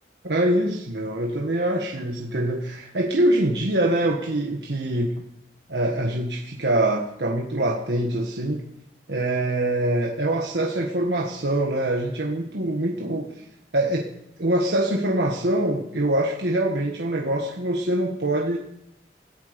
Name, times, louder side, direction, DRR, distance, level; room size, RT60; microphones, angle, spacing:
voice 1, 0.2-5.1 5.7-8.6 9.1-13.3 13.7-14.1 14.4-18.6, right 1 dB, 70° right, 0 dB, 1.5 m, -24 dB
17.0 x 15.0 x 5.2 m, 0.81 s
head